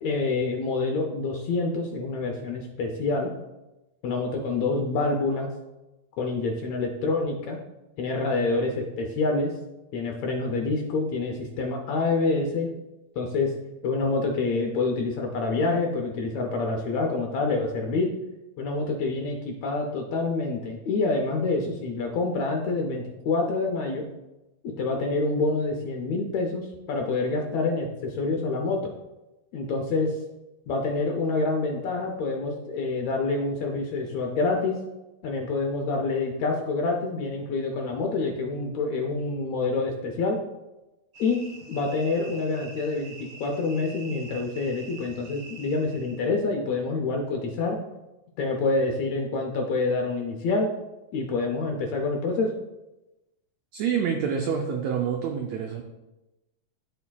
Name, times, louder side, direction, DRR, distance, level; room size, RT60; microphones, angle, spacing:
voice 1, 0.0-3.3 4.0-5.5 6.2-7.6 8.0-9.5 9.9-12.7 13.2-13.5 13.8-18.1 18.6-24.0 24.8-28.8 29.5-30.2 30.7-34.7 35.2-40.4 41.2-41.4 41.7-47.8 48.4-50.7 51.1-52.5, left 3 dB, 75° left, 2 dB, 1.7 m, -27 dB
sound 1, 41.1-46.2, right 3 dB, 35° right, 1.5 m, -46 dB
voice 2, 53.7-55.8, right 7 dB, 85° right, 2 dB, 1.5 m, -27 dB
12.5 x 4.4 x 2.3 m, 1.0 s
omnidirectional pair, 3.8 m